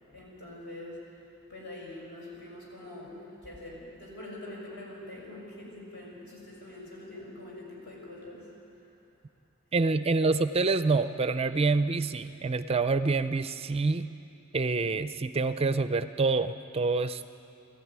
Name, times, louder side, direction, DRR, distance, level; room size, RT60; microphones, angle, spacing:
voice 1, 0.0-8.9, left 1 dB, 55° left, -4 dB, 6.7 m, -44 dB
voice 2, 9.7-14.1 14.5-17.4, right 3 dB, 30° right, 11 dB, 0.5 m, -27 dB
20.0 x 14.5 x 9.6 m, 2.7 s
head